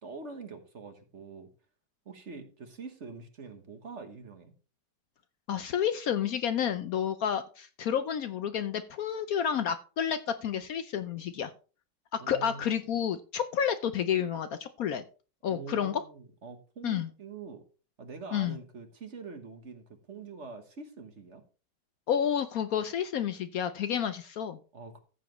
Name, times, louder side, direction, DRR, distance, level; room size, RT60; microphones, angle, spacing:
voice 1, 0.0-1.5 2.0-4.5 12.2-12.7 15.4-17.6 18.0-21.4 24.7-25.0, right 4 dB, 45° right, 7 dB, 1.4 m, -45 dB
voice 2, 5.5-11.5 12.1-15.0 15.4-16.0 16.8-17.1 18.3-18.6 22.1-24.6, left 8 dB, 65° left, 10 dB, 1.0 m, -30 dB
14.5 x 7.4 x 3.1 m, 0.36 s
omnidirectional pair, 1.9 m